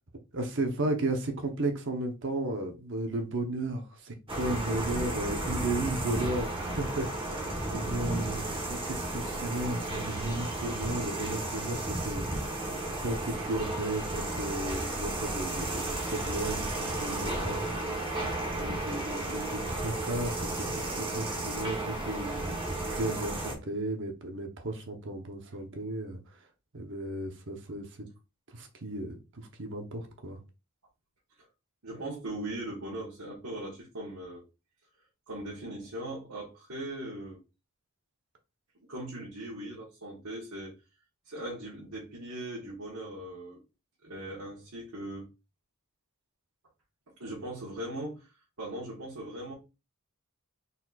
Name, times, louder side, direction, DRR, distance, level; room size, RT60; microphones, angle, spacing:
voice 1, 0.3-17.6 18.5-26.4 26.7-28.1 28.5-30.4, right 2 dB, 55° right, 0.9 m, -34 dB
sound 1, 4.3-23.5, right 2 dB, 25° right, 1.1 m, -33 dB
voice 2, 7.2-7.6 17.1-17.4 31.8-34.4 35.3-37.4 38.9-40.7 41.2-43.6 44.0-45.3 47.2-48.3 48.6-49.5, right 1 dB, 75° right, 1.6 m, -39 dB
4.2 x 4.2 x 2.4 m
head